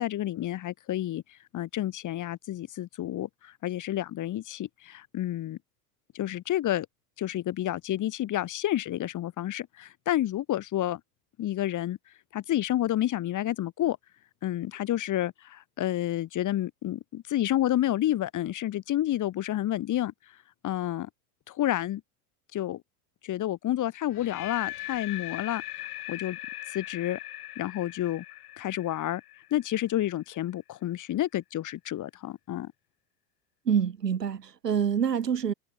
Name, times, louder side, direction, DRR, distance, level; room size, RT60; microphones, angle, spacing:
voice 1, 0.0-5.6 6.1-6.9 7.2-11.0 11.4-12.0 12.3-14.0 14.4-20.1 20.6-21.1 21.5-22.0 22.5-22.8 23.2-26.4 26.7-27.2 27.6-28.2 28.6-29.2 29.5-32.7, left 13 dB, 40° left, 5.1 m, -30 dB
sound 1, 24.1-30.1, left 14 dB, 70° left, 2.3 m, -40 dB
voice 2, 33.7-35.5, right 7 dB, 90° right, 2.1 m, -26 dB
hypercardioid pair, 90°, 47 cm